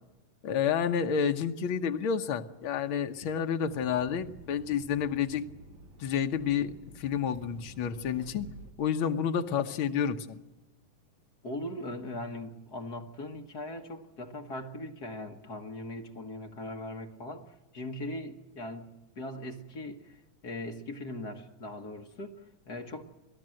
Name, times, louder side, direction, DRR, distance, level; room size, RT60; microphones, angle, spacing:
voice 1, 0.4-5.4 6.0-8.5 8.8-10.4, left 7 dB, 70° left, 6 dB, 1.2 m, -30 dB
sound 1, 3.7-8.7, right 2 dB, 60° right, 3.3 m, -50 dB
voice 2, 11.4-23.0, left 1 dB, 45° left, 4 dB, 1.2 m, -40 dB
27.5 x 18.5 x 7.8 m, 1.0 s
omnidirectional pair, 3.9 m